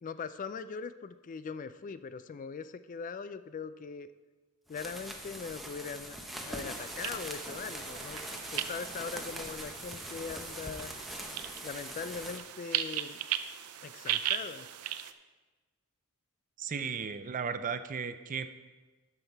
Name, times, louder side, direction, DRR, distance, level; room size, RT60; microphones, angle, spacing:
voice 1, 0.0-4.1 4.7-6.2 6.5-8.2 8.5-10.9 11.6-13.2 13.8-14.7, left 5 dB, 35° left, 13 dB, 0.3 m, -41 dB
sound 1, 4.7-12.4, equal, ahead, 0.9 m, -42 dB
sound 2, 6.8-15.1, right 11 dB, 90° right, 0.5 m, -38 dB
voice 2, 16.6-18.5, right 6 dB, 40° right, 11 dB, 0.5 m, -35 dB
12.5 x 5.7 x 4.6 m, 1.3 s
head